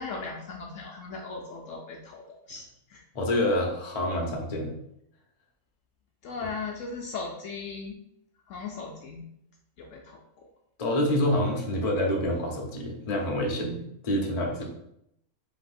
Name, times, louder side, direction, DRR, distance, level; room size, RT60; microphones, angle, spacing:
voice 1, 0.0-2.6 2.9-3.0 6.2-8.0 8.5-9.3 9.8-10.5, left 4 dB, 70° left, 1 dB, 0.8 m, -38 dB
voice 2, 3.1-4.7 10.8-14.6, left 1 dB, 35° left, 0 dB, 0.7 m, -27 dB
4.0 x 2.9 x 4.2 m, 0.77 s
omnidirectional pair, 1.6 m